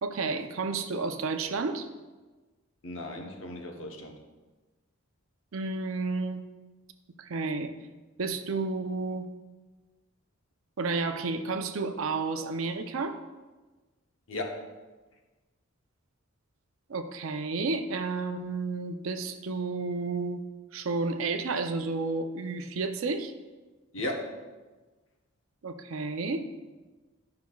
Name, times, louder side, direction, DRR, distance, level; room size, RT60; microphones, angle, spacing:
voice 1, 0.0-1.9 5.5-6.4 7.2-7.7 8.2-9.3 10.8-13.2 16.9-20.4 20.7-23.3 25.6-26.5, right 3 dB, 70° right, 7 dB, 0.6 m, -31 dB
voice 2, 2.8-4.2 14.3-14.7 23.9-24.5, left 1 dB, 65° left, 2 dB, 1.0 m, -36 dB
11.0 x 5.8 x 2.3 m, 1.2 s
head